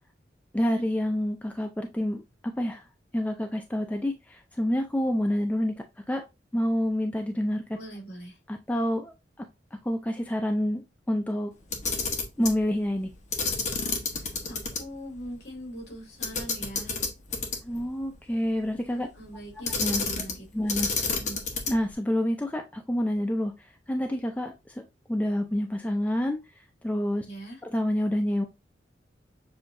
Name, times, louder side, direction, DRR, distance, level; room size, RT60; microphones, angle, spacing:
voice 1, 0.5-2.8 3.1-6.2 6.5-7.6 8.5-11.5 12.4-13.1 17.6-19.1 19.8-20.0 20.5-21.1 21.7-23.5 23.9-24.8 25.1-26.4 26.8-27.3 27.7-28.4, left 1 dB, 10° left, 4 dB, 0.4 m, -28 dB
voice 2, 7.7-8.4 14.1-17.0 17.6-17.7 19.0-19.7 20.0-20.7 21.1-21.4 27.2-27.6, equal, 60° left, 0 dB, 2.5 m, -42 dB
Camera, 11.6-12.6 13.3-14.8 15.1-15.2 16.2-17.8 19.6-20.4 20.7-21.9, left 4 dB, 40° left, 1.0 m, -29 dB
6.9 x 2.7 x 2.6 m, 0.24 s
head